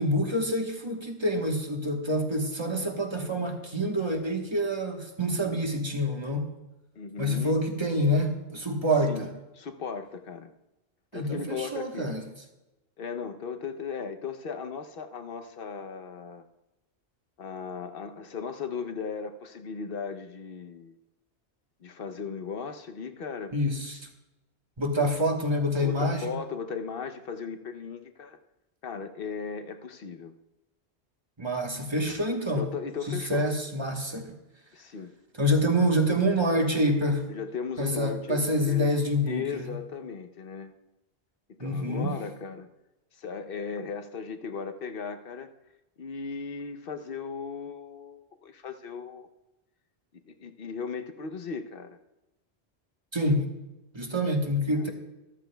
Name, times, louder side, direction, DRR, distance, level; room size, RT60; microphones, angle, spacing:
voice 1, 0.0-6.5 7.2-9.3 11.1-12.2 23.5-24.0 24.8-26.3 31.4-32.6 33.1-34.4 35.4-37.3 37.8-39.7 41.6-42.1 53.1-53.5 53.9-54.9, equal, 25° right, 3 dB, 1.2 m, -27 dB
voice 2, 7.0-7.6 9.1-9.3 9.6-10.5 11.1-12.1 13.0-16.4 17.4-20.9 21.8-23.5 25.0-25.2 25.8-28.4 28.8-30.3 32.6-33.5 34.7-35.1 37.3-38.9 39.2-40.7 41.5-42.7 43.2-45.5 46.0-49.3 50.3-52.0 54.8-54.9, left 5 dB, 60° left, 7 dB, 0.9 m, -37 dB
13.5 x 13.5 x 2.2 m, 1.0 s
omnidirectional pair, 1.1 m